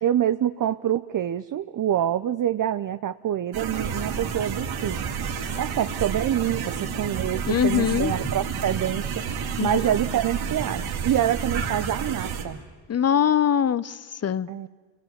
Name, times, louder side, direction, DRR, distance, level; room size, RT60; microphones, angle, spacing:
voice 1, 0.0-5.0 5.6-9.2 9.6-12.6 14.5-14.7, right 11 dB, 40° right, 11 dB, 0.7 m, -26 dB
sound 1, 3.5-12.4, right 6 dB, 70° right, 4.2 m, -30 dB
voice 2, 7.5-8.1 9.6-9.8 12.9-14.5, left 8 dB, 30° left, 19 dB, 0.8 m, -22 dB
29.0 x 22.5 x 8.2 m, 1.5 s
cardioid pair, 75°, 49 cm